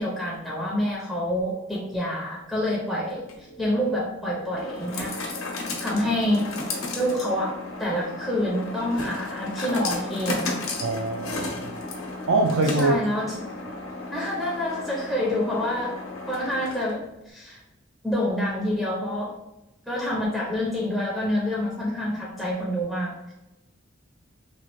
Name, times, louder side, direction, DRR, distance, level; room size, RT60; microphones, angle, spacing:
voice 1, 0.0-3.2 3.6-5.1 5.8-6.5 7.0-7.5 7.8-10.6 12.8-13.4 14.1-16.0 16.3-17.0 17.3-17.6 18.0-19.3 19.9-23.1, left 1 dB, ahead, -5 dB, 0.4 m, -27 dB
sound 1, 3.1-17.1, left 2 dB, 80° left, 0.7 m, -34 dB
voice 2, 10.8-11.7 12.3-13.0, right 2 dB, 70° right, 2 dB, 0.3 m, -23 dB
3.0 x 2.4 x 2.9 m, 0.96 s
head